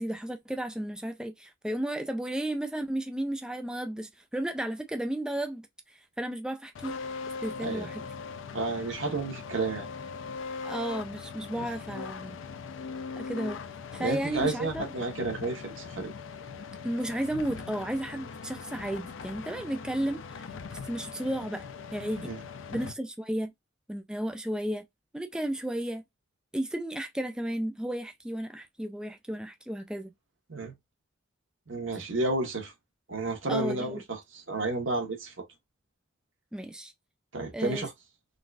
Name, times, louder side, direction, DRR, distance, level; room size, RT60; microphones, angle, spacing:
voice 1, 0.0-7.0 7.4-8.0 10.6-12.4 13.2-13.6 13.9-14.9 16.8-20.4 20.7-21.6 21.9-22.3 22.7-23.5 23.9-24.9 25.1-26.0 26.5-30.1 33.5-34.0 36.5-36.9 37.5-37.9, right 1 dB, 5° right, 0.3 m, -33 dB
sound 1, 6.8-22.9, left 5 dB, 70° left, 0.5 m, -40 dB
voice 2, 8.5-9.8 11.6-11.7 14.0-16.1 22.2-22.4 30.5-30.7 31.7-32.7 33.1-35.3 37.3-37.9, right 2 dB, 80° right, 1.3 m, -31 dB
3.9 x 2.4 x 2.5 m
head